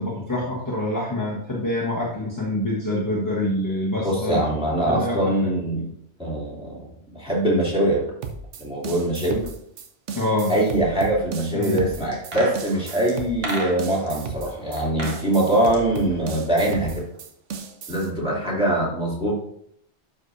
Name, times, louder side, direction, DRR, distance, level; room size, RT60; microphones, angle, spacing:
voice 1, 0.0-4.4 4.8-5.6 10.1-10.5 11.5-11.8, left 1 dB, 15° left, -4 dB, 1.2 m, -26 dB
voice 2, 4.0-5.9 6.2-6.8 7.1-8.0 8.6-9.5 10.5-17.0 17.9-19.3, right 1 dB, 5° right, -7 dB, 2.8 m, -23 dB
sound 1, 8.2-18.1, right 5 dB, 80° right, 1.1 m, -35 dB
sound 2, 12.1-14.1 14.8-15.2 15.5-16.9 17.1-17.2, right 2 dB, 55° right, 1.5 m, -33 dB
11.5 x 5.0 x 2.7 m, 0.71 s
omnidirectional pair, 1.2 m